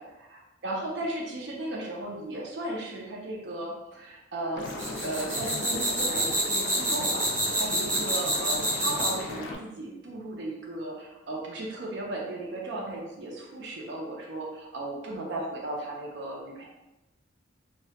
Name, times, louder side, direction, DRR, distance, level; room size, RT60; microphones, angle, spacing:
voice 1, 0.0-4.7 5.0-16.6, right 2 dB, 65° right, -2 dB, 0.5 m, -36 dB
Liquid, 4.6-9.6, left 2 dB, 70° left, 0.4 m, -37 dB
sound 1, 4.6-9.3, right 1 dB, 15° right, 0.7 m, -27 dB
2.2 x 2.0 x 2.7 m, 0.97 s
head